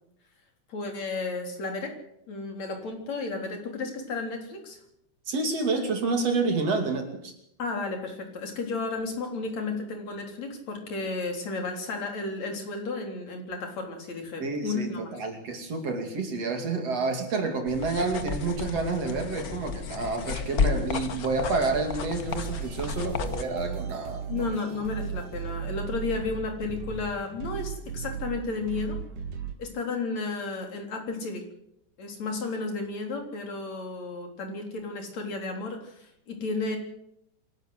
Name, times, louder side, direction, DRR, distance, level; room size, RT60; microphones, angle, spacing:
voice 1, 0.7-2.0 2.3-4.8 7.6-15.0 24.3-29.0 29.6-31.4 32.0-36.8, left 3 dB, 60° left, 4 dB, 5.0 m, -33 dB
voice 2, 5.3-7.3 14.4-24.5, right 3 dB, 55° right, 5 dB, 3.7 m, -29 dB
sound 1, 17.7-23.4, left 6 dB, 85° left, 0.8 m, -32 dB
sound 2, 22.2-29.5, right 7 dB, 85° right, 3.9 m, -36 dB
26.5 x 12.5 x 8.1 m, 0.75 s
omnidirectional pair, 3.5 m